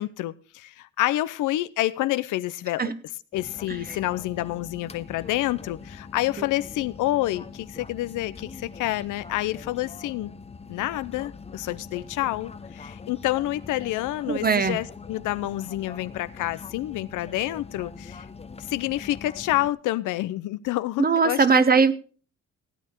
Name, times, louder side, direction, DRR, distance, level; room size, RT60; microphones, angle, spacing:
voice 1, 0.0-2.8 3.3-10.3 10.7-18.3 18.6-21.7, left 16 dB, 85° left, 0.7 m, -28 dB
sound 1, 3.3-19.7, left 5 dB, 20° left, 0.7 m, -43 dB
voice 2, 14.3-14.8 21.0-21.9, right 5 dB, 30° right, 1.1 m, -20 dB
15.5 x 8.8 x 4.5 m
cardioid pair, 90°, 30 cm